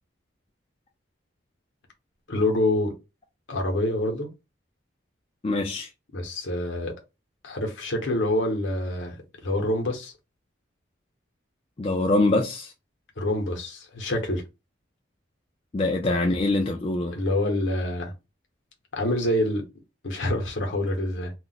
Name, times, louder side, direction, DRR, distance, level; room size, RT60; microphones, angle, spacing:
voice 1, 2.3-2.9 3.5-4.3 6.1-6.9 7.4-10.1 13.2-14.4 17.1-18.1 18.9-19.6 20.0-21.3, left 1 dB, 70° left, 0.9 m, -26 dB
voice 2, 5.4-5.9 11.8-12.7 15.7-17.2, left 2 dB, 30° left, 0.3 m, -24 dB
2.4 x 2.1 x 3.9 m
head